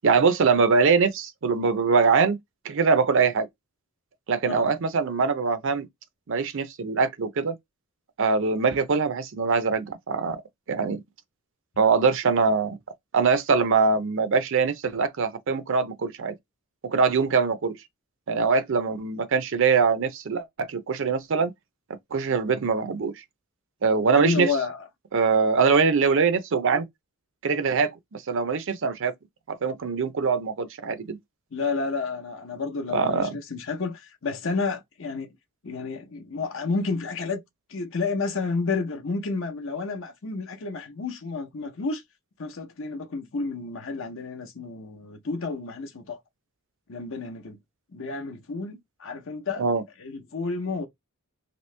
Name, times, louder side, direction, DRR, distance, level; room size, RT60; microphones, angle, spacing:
voice 1, 0.0-2.4 2.6-3.5 4.3-5.9 6.3-7.5 8.2-10.4 10.7-11.0 11.8-12.8 13.1-16.3 16.8-17.7 18.3-21.5 22.1-23.1 23.8-24.5 25.1-26.9 27.4-29.1 29.5-31.2 32.9-33.3 49.6-49.8, right 5 dB, 55° right, 0.5 m, -23 dB
voice 2, 24.1-24.9 31.5-35.3 35.6-37.4 37.7-42.0 42.4-46.2 46.9-47.6 47.9-49.6 50.0-50.9, left 4 dB, 60° left, 0.7 m, -30 dB
3.0 x 2.7 x 3.2 m
head